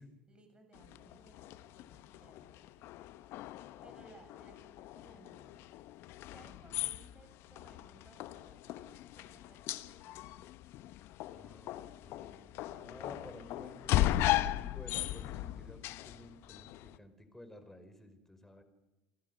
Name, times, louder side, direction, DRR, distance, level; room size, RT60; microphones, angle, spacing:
voice 1, 0.3-2.9 3.2-3.4 3.8-5.6 6.2-10.4 12.6-14.0 15.3-15.8, right 3 dB, 20° right, 6 dB, 7.7 m, -61 dB
sound 1, 0.7-17.0, left 15 dB, 60° left, 1.0 m, -38 dB
voice 2, 11.3-12.5 12.7-18.6, left 1 dB, 10° left, 8 dB, 5.1 m, -53 dB
29.0 x 15.5 x 6.9 m, 1.1 s
hypercardioid pair, 75°, 5 cm